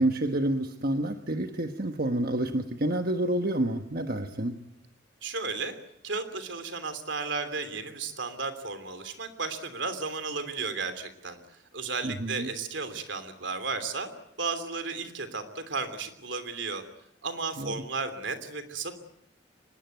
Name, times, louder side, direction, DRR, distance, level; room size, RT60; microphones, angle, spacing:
voice 1, 0.0-4.5 12.0-12.5 17.6-17.7, right 1 dB, 50° right, 6 dB, 1.3 m, -28 dB
voice 2, 5.2-5.7 6.0-11.4 11.7-14.1 14.4-16.8 17.2-18.9, right 4 dB, 75° right, 9 dB, 3.1 m, -34 dB
25.0 x 20.0 x 9.3 m, 0.81 s
head